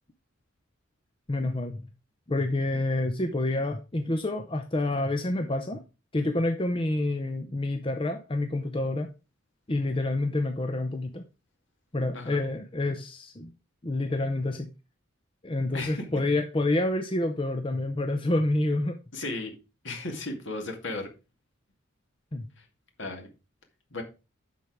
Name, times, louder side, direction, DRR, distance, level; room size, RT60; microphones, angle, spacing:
voice 1, 1.3-1.8 2.3-5.8 6.1-9.1 9.7-11.2 11.9-13.5 13.8-14.7 15.4-19.0 22.3-22.5, left 2 dB, 25° left, 0.7 m, -28 dB
voice 2, 15.7-16.0 19.1-19.5 19.8-21.1 22.6-22.7 23.0-23.3 23.9-24.0, left 2 dB, 60° left, 2.3 m, -35 dB
11.0 x 4.6 x 4.8 m
head